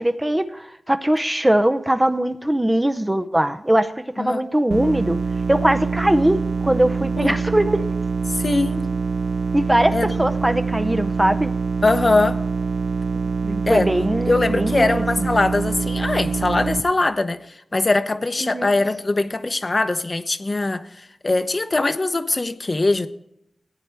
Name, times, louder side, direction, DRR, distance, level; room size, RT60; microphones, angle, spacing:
voice 1, 0.0-5.2 5.5-7.8 9.5-11.5 13.4-15.3 18.4-18.7, right 1 dB, 15° right, 0.6 m, -21 dB
sound 1, 4.7-16.8, right 4 dB, 55° right, 0.5 m, -25 dB
voice 2, 8.4-8.9 9.9-10.1 11.8-12.4 13.7-13.9 14.3-17.4 17.7-20.9 21.2-23.1, left 2 dB, 35° left, 0.8 m, -21 dB
15.0 x 9.1 x 3.4 m
wide cardioid pair, 70°, 0 cm